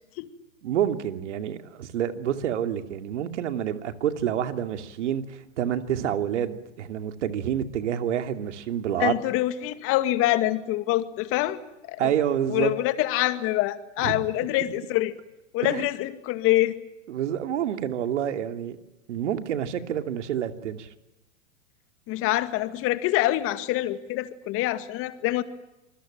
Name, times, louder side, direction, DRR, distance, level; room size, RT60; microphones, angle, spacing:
voice 1, 0.6-9.2 12.0-12.7 14.0-14.2 15.6-15.9 17.1-18.8 19.1-20.9, right 10 dB, 65° right, 8 dB, 2.7 m, -28 dB
voice 2, 9.0-11.6 11.9-12.1 12.5-15.1 15.5-16.7 22.1-25.4, left 15 dB, 35° left, 11 dB, 2.2 m, -25 dB
26.5 x 21.5 x 9.0 m, 0.94 s
hypercardioid pair, 125°, 38 cm